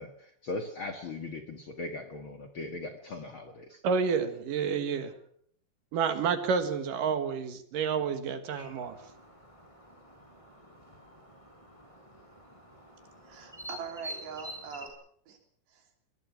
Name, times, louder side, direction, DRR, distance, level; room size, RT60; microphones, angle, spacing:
voice 1, 0.0-3.8, left 2 dB, 70° left, 6 dB, 1.2 m, -39 dB
voice 2, 3.8-5.1 5.9-9.0, right 6 dB, 60° right, 10 dB, 2.7 m, -29 dB
sound 1, 8.5-14.9, equal, 5° left, 5.2 m, -48 dB
voice 3, 13.2-14.9 15.3-15.4 15.7-15.9, right 6 dB, 80° right, 5 dB, 5.4 m, -42 dB
22.5 x 20.0 x 6.0 m, 0.64 s
omnidirectional pair, 4.9 m